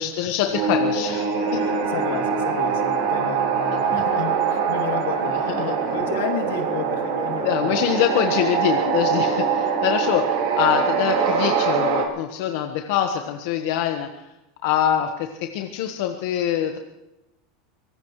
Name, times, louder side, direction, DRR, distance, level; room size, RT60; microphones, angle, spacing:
voice 1, 0.0-1.6 3.9-4.0 5.3-5.7 7.4-14.2 14.6-16.8, left 9 dB, 65° left, 4 dB, 1.4 m, -24 dB
sound 1, 0.5-12.0, right 6 dB, 65° right, 4.3 m, -23 dB
voice 2, 1.4-7.7, left 7 dB, 85° left, 2 dB, 2.8 m, -32 dB
24.0 x 18.5 x 3.2 m, 0.93 s
supercardioid pair, 145°, 0 cm